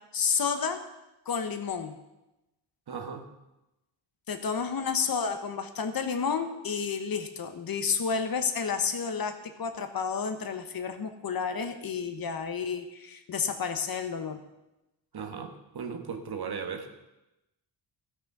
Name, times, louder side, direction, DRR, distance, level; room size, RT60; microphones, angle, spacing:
voice 1, 0.1-0.8 1.3-2.0 4.3-14.4, left 6 dB, 50° left, 8 dB, 1.1 m, -31 dB
voice 2, 2.9-3.3 15.1-16.9, right 6 dB, 55° right, 6 dB, 1.4 m, -37 dB
15.5 x 6.2 x 6.0 m, 0.95 s
wide cardioid pair, 150°, 44 cm